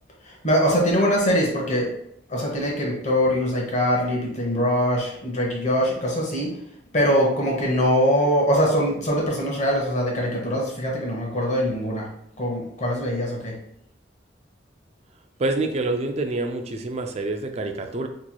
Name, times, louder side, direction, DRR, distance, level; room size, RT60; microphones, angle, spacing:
voice 1, 0.3-1.9 2.3-6.5 6.9-12.1 12.4-13.6, equal, 40° left, -2 dB, 1.0 m, -22 dB
voice 2, 15.4-18.1, right 2 dB, 35° right, 5 dB, 0.4 m, -26 dB
4.3 x 3.0 x 2.2 m, 0.72 s
head